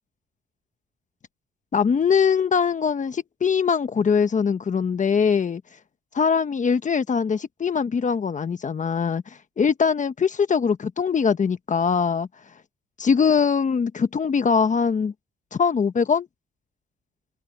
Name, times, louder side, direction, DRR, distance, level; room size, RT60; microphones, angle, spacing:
voice 1, 1.7-5.6 6.1-9.2 9.6-12.3 13.0-15.1 15.5-16.3, left 6 dB, 40° left, 1.3 m, -22 dB
open air
cardioid pair, 90°, 20 cm